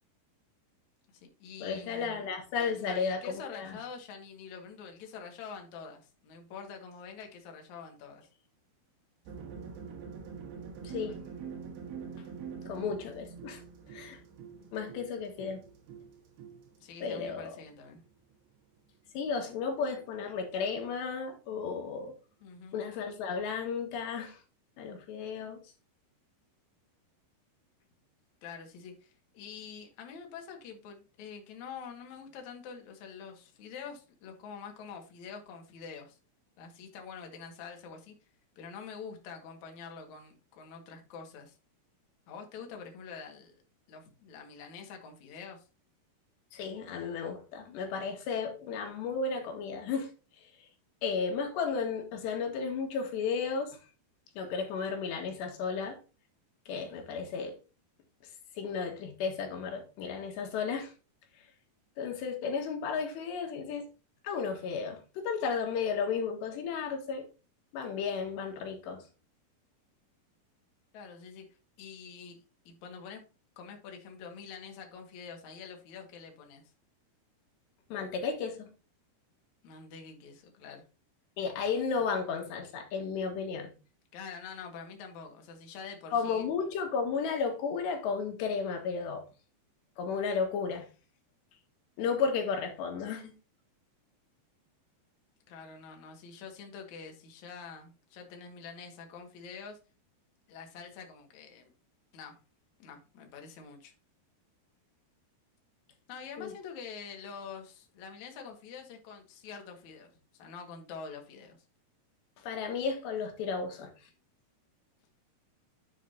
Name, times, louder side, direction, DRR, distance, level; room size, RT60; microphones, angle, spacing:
voice 1, 1.1-2.3 2.8-8.3 11.0-11.1 14.6-14.7 16.8-18.0 22.4-22.8 28.4-36.2 36.6-38.1 38.6-41.6 42.3-43.5 43.9-45.7 70.9-71.4 71.8-73.2 73.6-76.7 79.6-80.8 84.1-86.5 95.5-99.8 100.5-101.7 102.1-102.4 102.8-103.9 106.1-110.1 110.4-111.6, left 6 dB, 55° left, 2.8 m, -46 dB
voice 2, 1.6-3.8 10.8-11.2 12.7-13.6 13.9-14.2 14.7-15.6 17.0-17.5 19.1-22.1 22.7-24.4 24.8-25.6 46.5-50.1 51.0-53.8 54.4-56.0 56.7-57.6 58.6-60.9 62.0-63.9 64.2-67.3 67.7-69.0 77.9-78.7 81.4-83.7 86.1-89.2 90.0-90.9 92.0-93.3 106.4-106.5 112.4-113.9, left 5 dB, 85° left, 3.9 m, -33 dB
sound 1, 9.3-18.2, right 6 dB, 70° right, 3.5 m, -45 dB
9.9 x 7.5 x 2.8 m
omnidirectional pair, 4.8 m